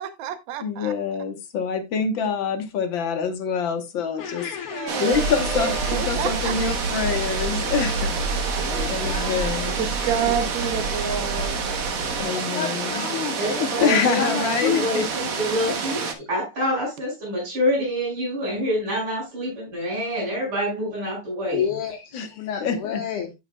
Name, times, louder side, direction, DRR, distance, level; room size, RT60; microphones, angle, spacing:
voice 1, 0.0-0.9 4.7-5.2 5.5-6.5 8.4-9.3 9.8-11.6, right 9 dB, 65° right, 1.6 m, -29 dB
voice 2, 0.6-8.6 8.9-10.3 12.2-13.1 13.7-15.1 22.1-22.3 22.6-23.0, left 5 dB, 65° left, 1.9 m, -26 dB
voice 3, 4.2-6.0 8.6-9.6 12.3-14.9 21.5-23.3, left 8 dB, 90° left, 2.0 m, -30 dB
sound 1, 4.9-16.1, right 5 dB, 50° right, 1.2 m, -29 dB
sound 2, 5.1-12.2, right 2 dB, 25° right, 2.3 m, -30 dB
voice 4, 13.4-21.7, equal, 85° right, 6.7 m, -27 dB
14.5 x 5.7 x 2.2 m
omnidirectional pair, 2.4 m